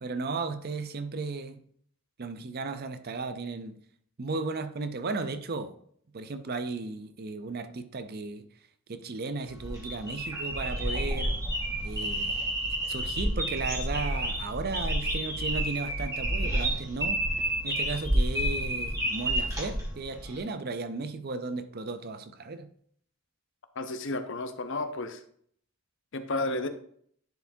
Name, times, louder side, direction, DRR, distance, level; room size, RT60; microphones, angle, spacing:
voice 1, 0.0-1.6 2.2-3.8 4.2-5.7 6.1-8.4 8.9-11.4 11.8-12.4 12.9-17.2 17.6-22.7, right 3 dB, 45° right, 0.6 m, -35 dB
sound 1, 9.5-20.4, right 1 dB, 15° right, 1.8 m, -30 dB
voice 2, 23.7-25.2 26.1-26.7, left 2 dB, 60° left, 0.7 m, -32 dB
10.5 x 4.6 x 2.7 m
head